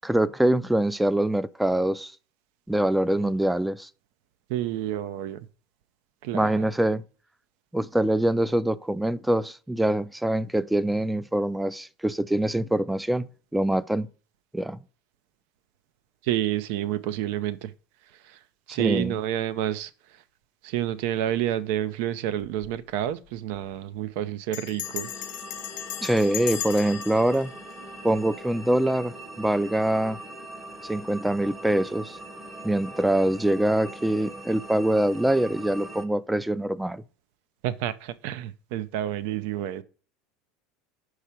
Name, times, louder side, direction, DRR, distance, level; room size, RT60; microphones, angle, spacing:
voice 1, 0.0-2.1 2.7-3.9 6.3-7.0 7.7-14.1 14.5-14.8 18.7-19.2 26.0-27.5 28.0-30.2 30.8-32.2 32.6-37.0, right 1 dB, 5° right, 0.4 m, -24 dB
voice 2, 4.5-5.4 6.2-6.5 16.2-17.7 18.2-18.4 18.7-19.9 20.6-25.1 37.6-39.8, right 12 dB, 70° right, 0.6 m, -29 dB
Bell, 22.4-22.8 23.0-23.1 23.4-23.7 24.5-28.6, left 15 dB, 70° left, 0.7 m, -37 dB
sound 1, 24.8-36.1, right 1 dB, 20° right, 1.0 m, -41 dB
5.8 x 4.9 x 4.3 m
supercardioid pair, 110°, 0 cm